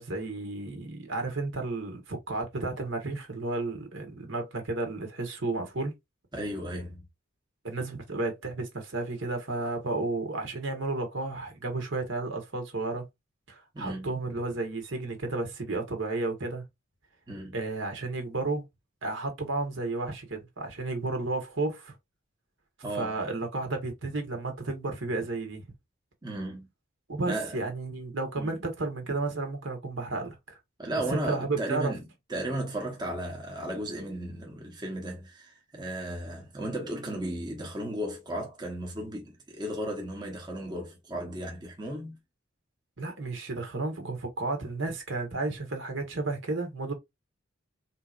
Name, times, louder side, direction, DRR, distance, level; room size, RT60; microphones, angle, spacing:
voice 1, 0.0-5.9 7.6-13.1 13.5-16.6 17.5-18.6 19.0-21.9 22.9-25.6 27.1-30.6 31.1-31.9 43.0-46.9, right 3 dB, 65° right, 1.3 m, -32 dB
voice 2, 6.3-7.1 13.7-14.1 17.3-17.6 22.8-23.2 26.2-26.7 27.3-27.6 28.3-28.6 30.8-32.0 32.3-42.1, right 1 dB, 20° right, 0.9 m, -35 dB
3.9 x 2.8 x 2.4 m
head